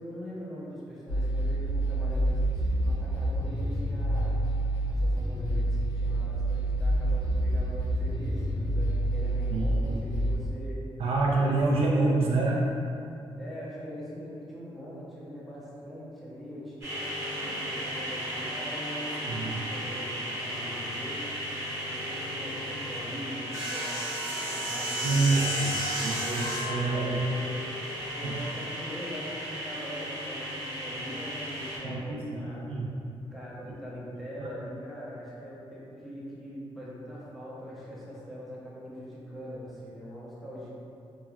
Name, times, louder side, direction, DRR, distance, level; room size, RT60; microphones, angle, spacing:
voice 1, 0.0-4.4 4.8-10.8 13.3-25.7 25.9-27.6 27.9-32.8 33.3-40.7, equal, ahead, -8 dB, 0.5 m, -42 dB
sound 1, 1.1-10.4, right 1 dB, 85° left, 1.2 m, -28 dB
voice 2, 9.5-10.0 11.0-12.6 19.3-19.5 25.0-27.2 28.2-28.4 31.8-32.9 34.4-34.5, right 3 dB, 70° right, -3 dB, 0.4 m, -27 dB
sound 2, 16.8-31.8, equal, 30° right, 0.9 m, -34 dB
3.0 x 2.2 x 2.3 m, 2.5 s
wide cardioid pair, 160°, 10 cm